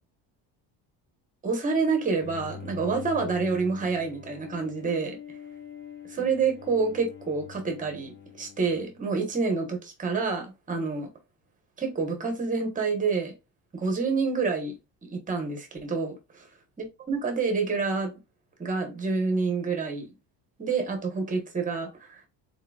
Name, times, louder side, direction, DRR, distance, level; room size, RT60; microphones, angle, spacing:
voice 1, 1.4-5.2 6.1-11.1 11.8-13.3 13.7-14.8 15.0-16.5 16.8-18.1 18.6-20.1 20.6-22.2, right 4 dB, 15° right, 0.9 m, -28 dB
Bowed string instrument, 2.2-9.4, left 7 dB, 25° left, 0.5 m, -44 dB
4.0 x 3.8 x 2.3 m
cardioid pair, 170°, 46 cm